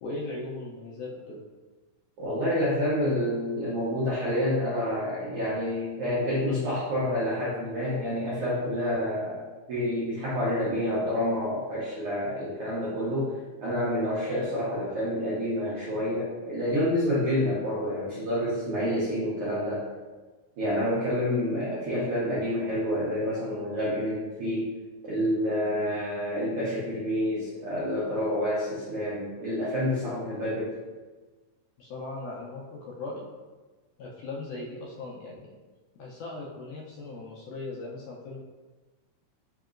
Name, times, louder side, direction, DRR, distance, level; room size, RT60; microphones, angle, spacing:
voice 1, 0.0-1.4 31.8-33.2 34.0-35.5 36.0-38.4, left 2 dB, 80° left, -3 dB, 1.8 m, -38 dB
voice 2, 2.2-19.9 20.6-24.7 25.0-30.8, left 1 dB, 85° right, -9 dB, 1.2 m, -28 dB
5.1 x 2.9 x 2.4 m, 1.3 s
omnidirectional pair, 3.9 m